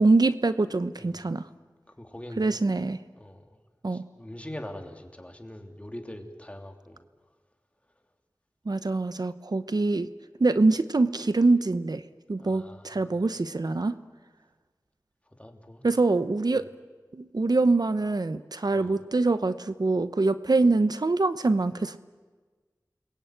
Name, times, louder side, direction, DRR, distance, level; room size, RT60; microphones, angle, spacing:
voice 1, 0.0-1.4 2.4-3.0 3.8-4.0 8.7-10.1 10.4-12.0 12.3-13.9 15.8-16.6 17.1-22.0, right 3 dB, 70° right, 12 dB, 0.9 m, -24 dB
voice 2, 2.0-2.5 3.1-3.5 3.9-7.1 12.4-13.2 15.4-15.8 18.7-19.0, left 1 dB, 20° left, 4 dB, 3.1 m, -43 dB
29.5 x 21.5 x 9.2 m, 1.4 s
wide cardioid pair, 50°, 7 cm